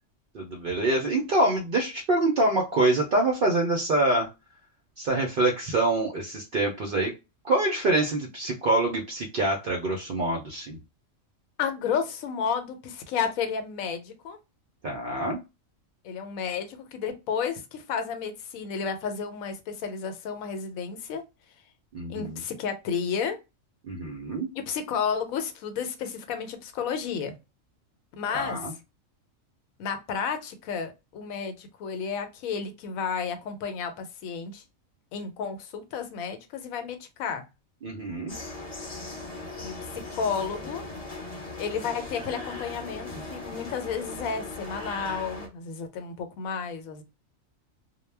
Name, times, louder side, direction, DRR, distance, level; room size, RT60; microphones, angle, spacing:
voice 1, 0.3-4.3 5.0-7.1 7.4-10.8 14.8-15.4 21.9-22.4 23.8-24.5 28.3-28.7 37.8-38.4, right 2 dB, 65° right, 0.5 m, -25 dB
voice 2, 11.6-14.4 16.0-21.2 22.1-23.4 24.6-27.4 28.2-28.7 29.8-34.6 35.1-37.4 39.6-40.8 41.6-47.0, left 6 dB, 85° left, 1.0 m, -32 dB
sound 1, 38.3-45.5, left 2 dB, 40° left, 0.6 m, -38 dB
2.2 x 2.1 x 3.2 m
omnidirectional pair, 1.4 m